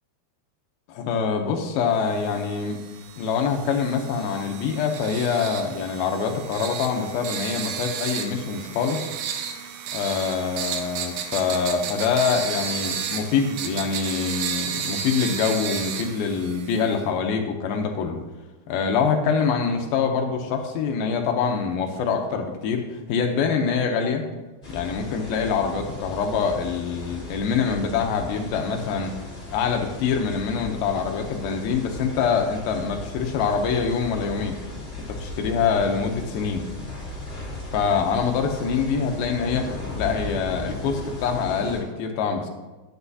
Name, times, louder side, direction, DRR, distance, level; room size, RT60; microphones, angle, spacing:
voice 1, 0.9-2.8 3.2-9.0 9.9-18.2 18.7-24.2 24.7-29.1 29.5-34.6 35.1-36.6 37.7-39.7 40.0-42.5, left 6 dB, 75° left, 4 dB, 2.4 m, -25 dB
sound 1, 2.1-17.0, right 7 dB, 85° right, 2.7 m, -33 dB
sound 2, 24.6-41.8, left 2 dB, 20° left, 2.2 m, -37 dB
10.0 x 9.0 x 2.7 m, 1.2 s
omnidirectional pair, 4.7 m